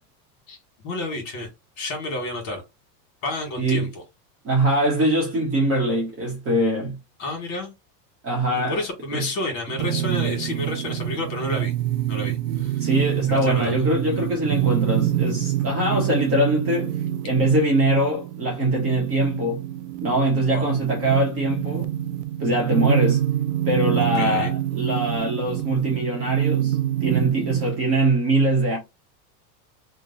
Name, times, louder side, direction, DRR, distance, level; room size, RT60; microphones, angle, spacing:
voice 1, 0.8-1.5 1.8-2.6 3.2-3.9 7.2-7.7 8.5-11.7 12.1-12.8 13.3-13.7 20.5-20.7 24.0-24.5, left 2 dB, 50° left, 1.5 m, -30 dB
voice 2, 4.4-7.0 8.2-8.8 9.1-9.2 12.8-17.0 17.2-19.6 20.0-21.9 22.4-23.2 23.6-28.8, right 1 dB, 30° right, 0.9 m, -22 dB
sound 1, 9.8-27.8, right 12 dB, 80° right, 0.5 m, -26 dB
2.9 x 2.2 x 3.8 m
supercardioid pair, 150°, 48 cm